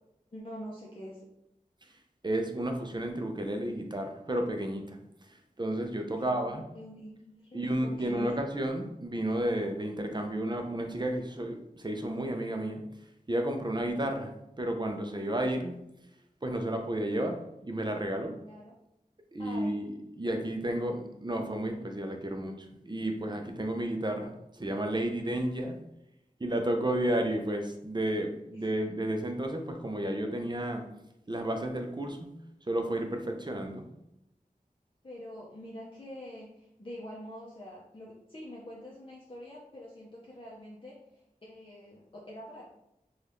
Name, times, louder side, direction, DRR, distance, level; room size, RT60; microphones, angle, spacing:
voice 1, 0.3-1.3 6.2-8.4 18.5-18.7 19.4-19.9 28.5-28.7 35.0-42.7, left 1 dB, 35° left, -5 dB, 0.6 m, -45 dB
voice 2, 2.2-6.6 7.5-12.8 13.3-15.7 16.4-18.4 19.3-25.8 26.4-30.8 31.3-32.3 32.7-33.8, right 1 dB, 30° right, 4 dB, 0.5 m, -32 dB
2.7 x 2.3 x 3.3 m, 0.85 s
wide cardioid pair, 45°, 15 cm